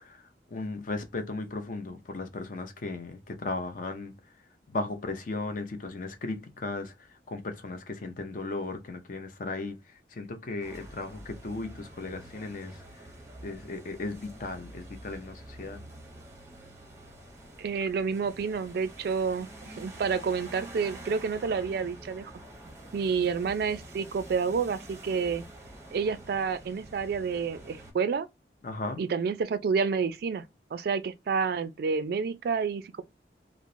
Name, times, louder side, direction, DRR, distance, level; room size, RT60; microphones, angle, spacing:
voice 1, 0.5-4.1 4.7-6.9 7.3-9.8 10.2-12.7 13.4-15.8 28.6-29.0, left 3 dB, 50° left, 0.5 m, -36 dB
sound 1, 10.6-27.9, right 1 dB, 15° right, 0.6 m, -47 dB
voice 2, 17.6-22.3 22.9-25.5 25.9-28.3 29.0-30.4 30.7-33.0, right 5 dB, 60° right, 0.3 m, -29 dB
2.9 x 2.0 x 2.5 m
head